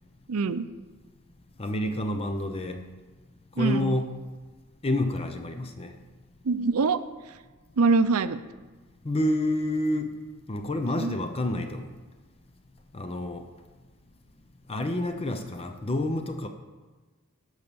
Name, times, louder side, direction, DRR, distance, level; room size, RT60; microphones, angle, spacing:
voice 1, 0.3-0.7 3.6-4.0 6.4-7.0 7.8-8.4 11.0-11.1, right 4 dB, 70° right, 12 dB, 0.5 m, -24 dB
voice 2, 1.6-2.8 3.6-4.1 4.8-5.9 9.0-10.2 10.5-11.9 12.9-13.5 14.7-16.5, left 1 dB, 25° left, 7 dB, 0.6 m, -28 dB
11.5 x 4.8 x 6.9 m, 1.3 s
head